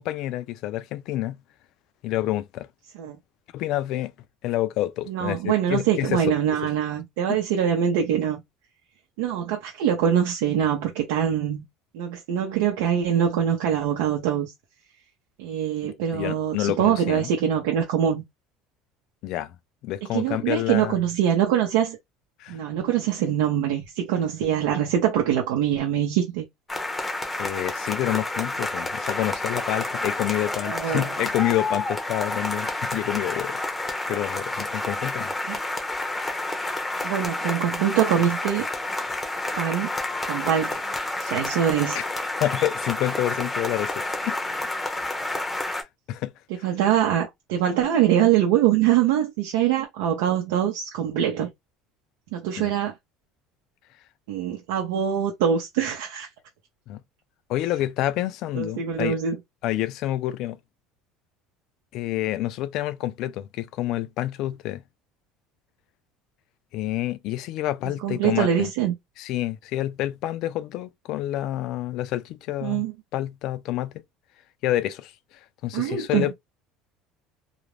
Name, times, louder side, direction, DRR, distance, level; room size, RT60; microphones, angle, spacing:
voice 1, 0.0-1.4 2.0-2.7 3.5-4.1 4.4-6.3 7.3-7.4 15.8-17.3 19.2-19.5 19.8-21.0 22.4-22.6 27.4-33.6 34.1-35.3 41.9-42.1 42.4-44.4 45.7-45.8 46.1-46.3 52.6-52.7 56.9-57.0 57.5-59.2 59.6-60.6 61.9-64.8 66.7-68.7 69.2-73.9 74.6-75.1 75.6-76.3, left 14 dB, 55° left, 0.3 m, -28 dB
voice 2, 5.1-8.4 9.2-11.6 11.9-14.5 15.4-18.2 20.1-22.0 22.5-26.4 30.7-31.1 35.5-35.6 37.0-38.7 39.5-39.9 40.2-40.8 41.2-42.0 46.6-51.5 52.3-52.9 54.3-56.3 58.5-59.4 68.0-68.9 72.6-72.9 75.7-76.3, right 9 dB, 90° right, 0.6 m, -23 dB
sound 1, 26.7-45.8, left 2 dB, 10° left, 0.6 m, -29 dB
2.4 x 2.0 x 3.0 m
cardioid pair, 150°, 0 cm